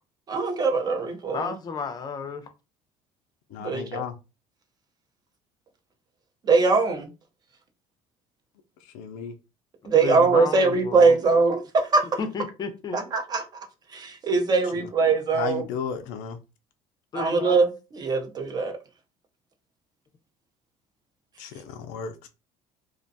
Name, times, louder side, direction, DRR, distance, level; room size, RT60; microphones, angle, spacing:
voice 1, 0.3-1.5 3.6-4.0 6.5-7.1 9.8-11.6 11.9-12.0 12.9-13.4 13.9-15.6 17.1-17.7 17.9-18.7, right 4 dB, 30° right, 0.5 m, -21 dB
voice 2, 1.3-2.5 9.9-11.2 12.2-13.1 17.1-17.6, left 5 dB, 30° left, 0.5 m, -32 dB
voice 3, 3.5-4.2 8.8-9.4 14.8-14.9 15.3-16.4 21.4-22.3, left 7 dB, 85° left, 0.4 m, -34 dB
2.4 x 2.2 x 2.6 m
cardioid pair, 125°, 13 cm